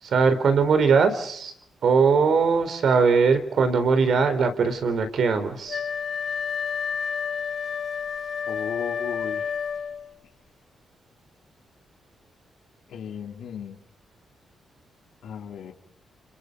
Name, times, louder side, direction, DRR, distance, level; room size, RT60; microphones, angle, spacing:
voice 1, 0.0-1.5 1.8-5.9, right 5 dB, 65° right, 9 dB, 4.2 m, -21 dB
Wind instrument woodwind instrument, 5.7-10.1, left 6 dB, 55° left, 7.2 m, -30 dB
voice 2, 8.5-9.5 12.9-13.8 15.2-15.7, left 8 dB, 80° left, 2 dB, 4.3 m, -35 dB
29.5 x 28.5 x 5.3 m, 0.66 s
cardioid pair, 110°, 0 cm